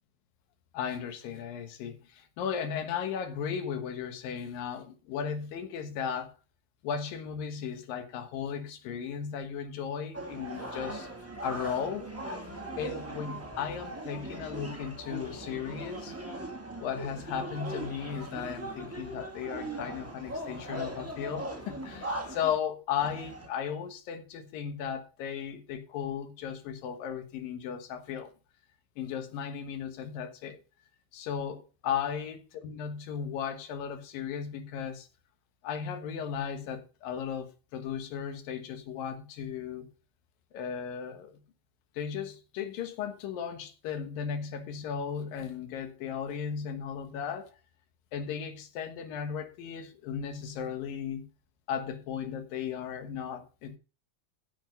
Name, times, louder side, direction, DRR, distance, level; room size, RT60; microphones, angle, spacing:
voice 1, 0.7-6.3 6.8-11.1 11.4-12.1 12.8-16.2 16.8-28.3 29.0-30.6 31.1-35.1 35.6-39.9 40.5-41.4 41.9-47.5 48.1-51.3 51.7-53.8, left 7 dB, 85° left, 3.1 m, -36 dB
sound 1, 10.1-22.6 23.0-23.5, right 1 dB, 15° right, 0.5 m, -39 dB
9.5 x 7.2 x 5.3 m
omnidirectional pair, 3.9 m